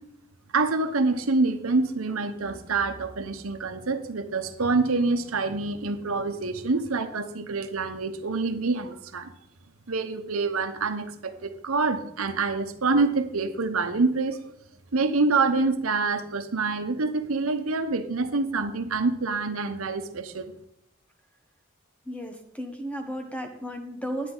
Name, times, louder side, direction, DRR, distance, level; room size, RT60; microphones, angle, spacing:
voice 1, 0.5-9.3 9.9-14.4 14.9-20.5, right 3 dB, 90° right, 8 dB, 0.9 m, -26 dB
voice 2, 22.0-24.3, equal, 5° left, 5 dB, 1.0 m, -34 dB
9.9 x 9.4 x 3.9 m, 0.76 s
head